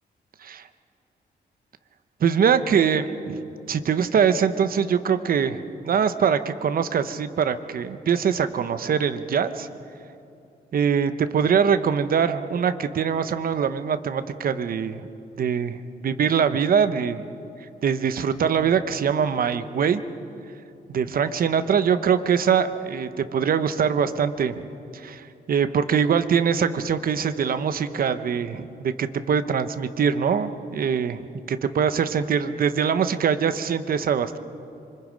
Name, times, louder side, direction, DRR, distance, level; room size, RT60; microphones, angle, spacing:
voice 1, 2.2-3.4 3.7-9.7 10.7-15.1 15.4-17.2 17.8-20.0 20.9-24.6 24.9-34.4, right 7 dB, 55° right, 11 dB, 1.0 m, -23 dB
26.0 x 25.0 x 5.2 m, 2.7 s
wide cardioid pair, 140°, 18 cm